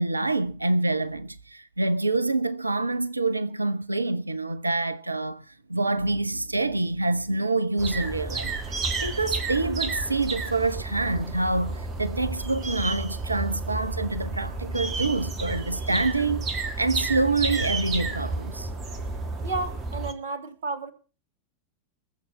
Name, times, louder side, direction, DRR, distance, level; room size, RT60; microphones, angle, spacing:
voice 1, 0.0-18.7, right 2 dB, 85° right, 0.7 m, -26 dB
sound 1, 7.8-20.1, right 3 dB, 30° right, 2.2 m, -31 dB
voice 2, 19.4-20.9, right 3 dB, 60° right, 2.1 m, -32 dB
21.0 x 7.3 x 5.8 m
figure-of-eight pair, 90°, 0 cm